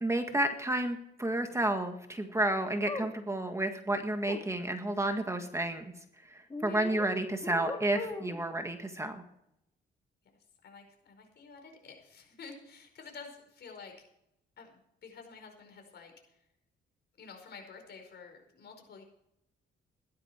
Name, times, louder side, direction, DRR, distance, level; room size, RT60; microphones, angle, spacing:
voice 1, 0.0-5.9 6.3-9.2, right 1 dB, 15° right, 6 dB, 1.7 m, -31 dB
sound 1, 2.9-3.1 4.3-4.4 6.5-7.1 7.4-8.4, left 3 dB, 20° left, 2.3 m, -39 dB
voice 2, 6.6-7.0 10.6-13.9 14.6-16.1 17.2-19.0, left 5 dB, 60° left, 4 dB, 5.0 m, -50 dB
15.5 x 12.0 x 4.5 m, 0.79 s
cardioid pair, 90°, 20 cm